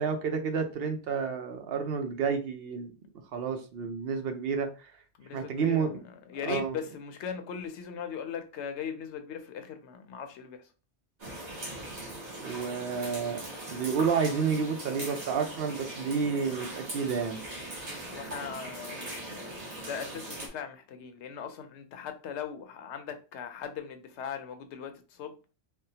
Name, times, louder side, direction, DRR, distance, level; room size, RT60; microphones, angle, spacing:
voice 1, 0.0-2.9 3.3-4.9 5.3-6.0 6.5-6.8 12.4-13.4 13.7-17.4, right 6 dB, 65° right, 0.7 m, -30 dB
voice 2, 5.2-10.7 18.1-25.4, left 7 dB, 90° left, 0.9 m, -39 dB
sound 1, 11.2-20.5, right 1 dB, 40° right, 1.0 m, -40 dB
3.5 x 2.1 x 2.7 m
omnidirectional pair, 1.1 m